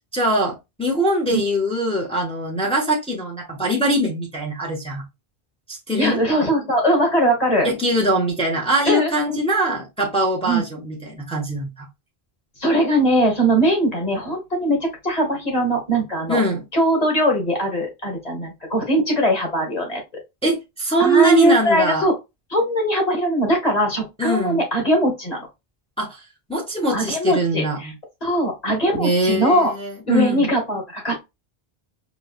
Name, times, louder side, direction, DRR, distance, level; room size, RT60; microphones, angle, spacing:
voice 1, 0.1-5.0 5.7-6.2 7.6-11.9 16.3-16.6 20.4-22.0 24.2-24.6 26.0-26.2 26.5-27.9 28.9-30.5, right 1 dB, 5° left, 0.8 m, -22 dB
voice 2, 6.0-7.7 8.8-9.4 10.4-10.6 12.6-16.4 16.7-20.0 21.0-22.1 22.5-25.5 26.9-27.9 28.2-29.7 30.1-31.2, right 1 dB, 40° left, 1.4 m, -20 dB
4.8 x 2.2 x 2.3 m
omnidirectional pair, 1.0 m